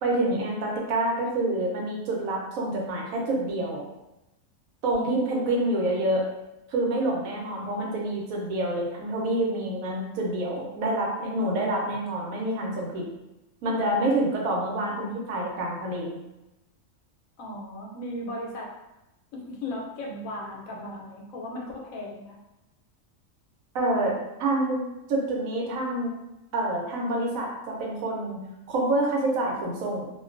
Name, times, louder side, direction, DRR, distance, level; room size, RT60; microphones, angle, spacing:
voice 1, 0.0-3.8 4.8-6.3 6.7-13.1 13.6-16.2 23.7-24.8 25.1-26.1 26.5-30.1, right 1 dB, 85° right, -2 dB, 1.1 m, -27 dB
voice 2, 17.4-18.7 19.3-22.4, left 1 dB, 80° left, -2 dB, 1.0 m, -36 dB
2.5 x 2.2 x 2.4 m, 0.95 s
omnidirectional pair, 1.4 m